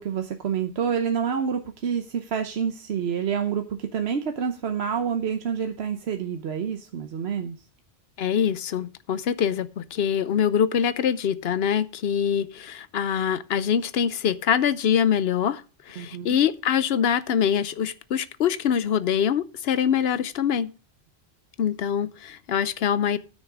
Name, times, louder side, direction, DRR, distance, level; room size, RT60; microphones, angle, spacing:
voice 1, 0.0-7.6 16.0-16.4, right 7 dB, 75° right, 1.1 m, -28 dB
voice 2, 8.2-20.7 21.6-23.2, left 8 dB, 70° left, 0.9 m, -24 dB
13.0 x 6.4 x 4.9 m
omnidirectional pair, 1.1 m